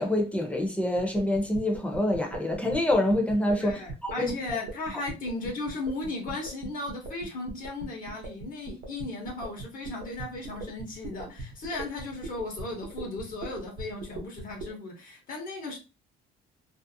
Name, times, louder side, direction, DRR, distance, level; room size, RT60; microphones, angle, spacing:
voice 1, 0.0-4.6, left 1 dB, 10° left, 0.7 m, -26 dB
sound 1, 1.0-14.7, right 2 dB, 60° right, 0.8 m, -39 dB
voice 2, 3.6-15.8, left 2 dB, 55° left, 1.0 m, -36 dB
2.6 x 2.0 x 2.6 m
cardioid pair, 110°, 17 cm